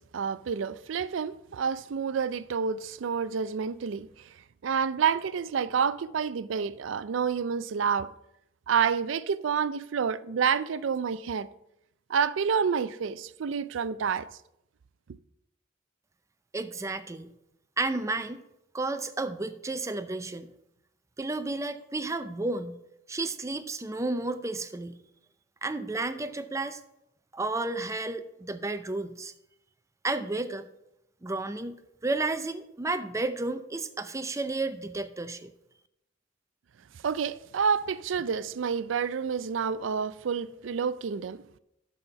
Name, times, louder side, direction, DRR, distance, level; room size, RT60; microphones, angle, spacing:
voice 1, 0.1-4.1 4.6-8.1 8.7-11.5 12.1-14.3 37.0-41.4, right 6 dB, 75° right, 0.4 m, -28 dB
voice 2, 16.5-17.3 17.8-18.4 18.7-20.5 21.2-22.8 23.1-25.0 25.6-26.8 27.3-29.3 30.0-30.7 31.2-31.7 32.0-35.5, right 2 dB, 15° right, 0.5 m, -32 dB
12.0 x 4.3 x 5.7 m
head